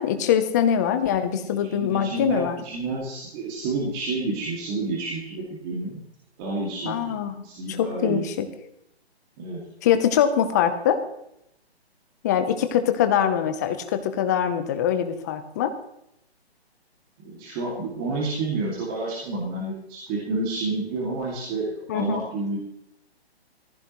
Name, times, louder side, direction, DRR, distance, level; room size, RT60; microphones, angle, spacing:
voice 1, 0.0-2.6 6.8-7.4 7.7-8.5 9.8-11.0 12.2-15.7 21.9-22.3, left 9 dB, 15° left, 9 dB, 0.7 m, -23 dB
voice 2, 1.6-6.0 6.4-8.2 9.4-9.6 17.2-22.6, right 3 dB, 20° right, -4 dB, 2.3 m, -29 dB
17.5 x 15.0 x 3.1 m, 0.79 s
hypercardioid pair, 160°, 32 cm